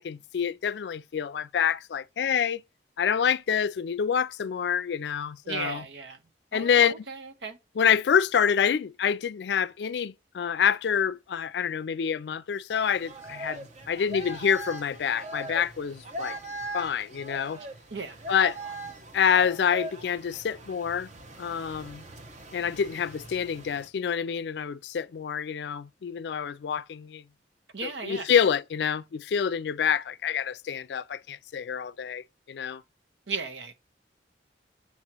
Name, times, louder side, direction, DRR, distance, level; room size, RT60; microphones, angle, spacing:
voice 1, 0.0-2.6 3.0-5.9 6.5-7.1 7.7-16.4 16.7-17.6 18.3-18.6 19.1-21.1 21.4-22.0 22.5-27.2 27.8-32.8, left 7 dB, 75° left, 0.4 m, -27 dB
voice 2, 5.5-6.2 6.5-7.6 17.9-18.2 27.7-28.3 33.3-33.7, right 4 dB, 90° right, 1.1 m, -36 dB
sound 1, 12.7-23.9, right 2 dB, 40° right, 0.9 m, -41 dB
7.3 x 3.0 x 6.0 m
head